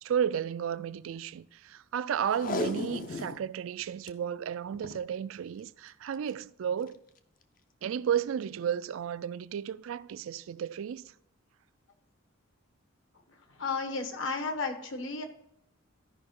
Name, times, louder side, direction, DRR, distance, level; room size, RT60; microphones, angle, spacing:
voice 1, 0.0-7.0 7.8-11.1, right 8 dB, 70° right, 0.3 m, -33 dB
Packing tape duct tape, 2.3-3.4 3.8-4.1 4.7-5.0 6.1-6.3 6.9-7.0, left 2 dB, 40° left, 0.5 m, -35 dB
voice 2, 13.6-15.2, left 4 dB, 65° left, 1.1 m, -33 dB
12.5 x 5.2 x 3.7 m
head